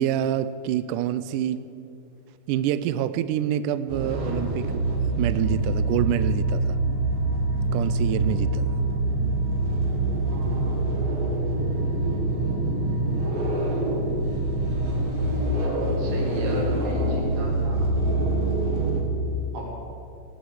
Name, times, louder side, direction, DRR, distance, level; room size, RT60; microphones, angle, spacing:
voice 1, 0.0-1.6 2.5-6.8 7.7-8.8, right 11 dB, 85° right, 13 dB, 1.8 m, -27 dB
sound 1, 3.9-19.0, right 2 dB, 50° right, 2.8 m, -25 dB
voice 2, 10.3-10.7 15.7-17.9 19.5-19.7, right 1 dB, 70° right, -2 dB, 4.6 m, -35 dB
17.5 x 7.9 x 8.5 m, 2.7 s
omnidirectional pair, 4.2 m